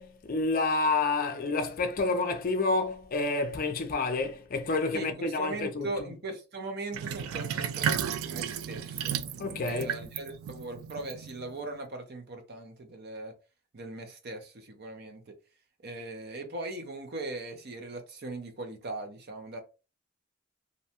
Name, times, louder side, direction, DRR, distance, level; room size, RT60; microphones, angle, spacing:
voice 1, 0.0-6.1 9.4-9.9, left 3 dB, 45° left, 0.4 m, -29 dB
voice 2, 4.9-9.2 9.7-13.3 13.7-15.3 15.8-19.6, right 2 dB, 50° right, 0.6 m, -39 dB
Sink (filling or washing), 6.9-11.7, right 8 dB, 85° right, 0.3 m, -34 dB
2.6 x 2.1 x 2.8 m
head